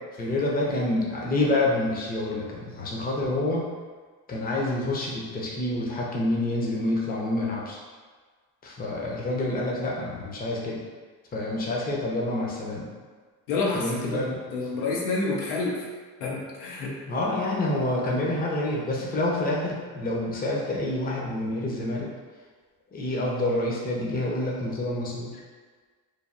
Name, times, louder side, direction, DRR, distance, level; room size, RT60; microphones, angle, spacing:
voice 1, 0.2-3.6 4.3-7.8 8.6-10.8 11.3-12.9 13.7-14.4 17.1-22.1 22.9-25.3, left 1 dB, 20° left, -3 dB, 0.6 m, -27 dB
voice 2, 13.5-15.8 16.2-16.9, left 3 dB, 85° left, -4 dB, 0.8 m, -28 dB
3.2 x 2.2 x 2.5 m, 1.5 s
supercardioid pair, 80°, 48 cm